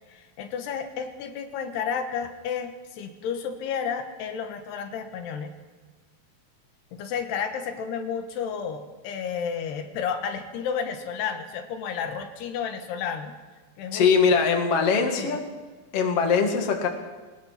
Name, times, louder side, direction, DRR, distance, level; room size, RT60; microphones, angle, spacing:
voice 1, 0.1-5.5 7.0-13.4 13.8-14.4 15.1-15.4, left 7 dB, 85° left, 6 dB, 3.5 m, -32 dB
voice 2, 13.9-15.4 15.9-16.9, left 5 dB, 45° left, 3 dB, 2.7 m, -21 dB
22.5 x 20.0 x 5.9 m, 1.3 s
omnidirectional pair, 4.6 m